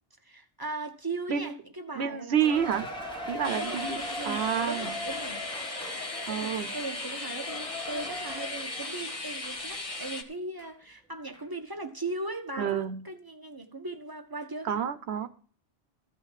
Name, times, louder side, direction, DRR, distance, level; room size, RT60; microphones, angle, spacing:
voice 1, 0.2-2.7 3.3-5.4 6.3-14.7, right 2 dB, 20° right, 1.4 m, -38 dB
voice 2, 2.0-2.9 3.3-4.0 4.2-4.9 6.3-6.7 12.6-13.0 14.6-15.3, right 8 dB, 80° right, 1.0 m, -29 dB
Cheering, 2.4-10.2 10.6-10.7 11.3-11.4, left 1 dB, 5° left, 2.0 m, -40 dB
sound 1, 3.4-10.2, left 2 dB, 35° left, 1.4 m, -37 dB
14.5 x 5.7 x 7.5 m
omnidirectional pair, 1.1 m